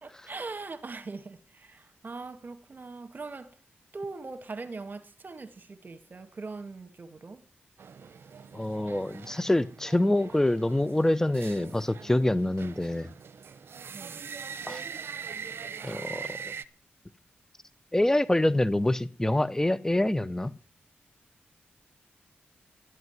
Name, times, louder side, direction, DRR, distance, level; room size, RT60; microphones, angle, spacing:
voice 1, 0.0-3.5 3.9-7.4 13.9-14.2, right 3 dB, 50° right, 2.0 m, -41 dB
sound 1, 7.8-16.6, right 6 dB, 70° right, 0.8 m, -42 dB
voice 2, 8.5-13.1 14.7-14.8 15.8-16.4 17.9-20.5, left 1 dB, 15° left, 0.8 m, -26 dB
12.5 x 8.1 x 9.5 m
cardioid pair, 45°, 4 cm